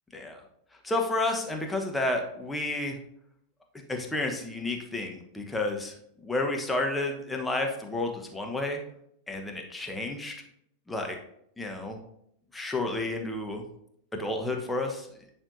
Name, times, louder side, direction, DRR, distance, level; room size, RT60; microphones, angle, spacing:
voice 1, 0.1-0.4 0.8-3.0 3.9-5.9 6.2-8.8 9.3-10.3 10.9-11.2 11.6-12.0 12.5-13.6 14.2-15.1, left 2 dB, 10° left, 2 dB, 1.1 m, -31 dB
10.0 x 5.4 x 2.7 m, 0.72 s
figure-of-eight pair, 90°, 0 cm